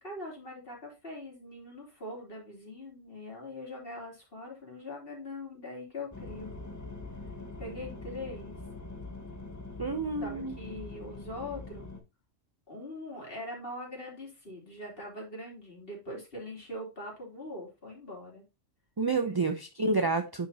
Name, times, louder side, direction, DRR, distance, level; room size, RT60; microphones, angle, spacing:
voice 1, 0.0-6.5 7.6-8.5 10.2-11.9 12.7-18.4 19.2-19.4, left 1 dB, 50° left, 3.4 m, -42 dB
sound 1, 6.1-12.0, left 3 dB, 15° left, 1.1 m, -43 dB
voice 2, 9.8-10.5 19.0-20.5, right 3 dB, 30° right, 0.4 m, -29 dB
9.4 x 5.8 x 2.8 m
omnidirectional pair, 1.3 m